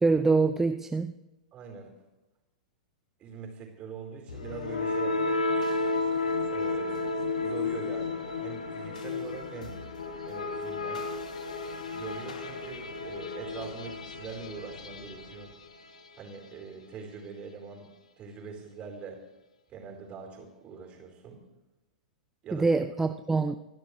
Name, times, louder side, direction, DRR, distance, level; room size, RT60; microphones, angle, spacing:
voice 1, 0.0-1.1 22.5-23.6, right 3 dB, 10° right, 8 dB, 0.5 m, -25 dB
voice 2, 1.5-1.9 3.2-5.4 6.5-7.1 7.4-9.8 10.3-11.1 11.9-15.5 16.2-17.9 18.2-19.2 19.7-21.4 22.4-22.7, right 5 dB, 30° right, 2 dB, 4.5 m, -43 dB
sound 1, 4.3-16.2, left 3 dB, 70° left, 1.5 m, -32 dB
29.5 x 12.0 x 3.3 m, 1.1 s
figure-of-eight pair, 100°, 4 cm